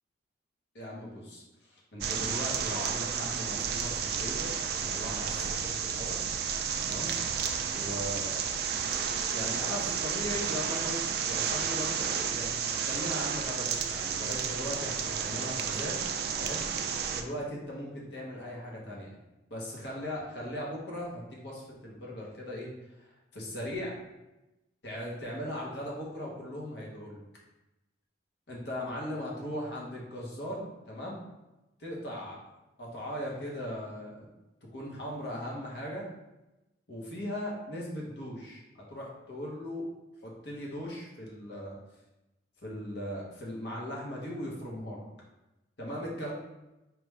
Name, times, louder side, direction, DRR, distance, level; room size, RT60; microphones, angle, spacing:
voice 1, 0.7-4.5 4.8-6.2 6.8-7.1 7.7-8.4 9.3-11.0 11.2-16.0 16.4-16.8 17.1-19.1 19.5-22.7 23.0-24.0 24.8-27.2 28.5-31.2 31.8-32.4 32.8-34.3 34.7-36.1 36.9-38.6 38.9-39.8 40.2-41.8 42.6-45.0 45.8-46.3, left 1 dB, 60° left, -3 dB, 1.1 m, -38 dB
sound 1, 2.0-17.2, right 7 dB, 55° right, 0.3 m, -32 dB
4.6 x 2.5 x 3.3 m, 0.99 s
head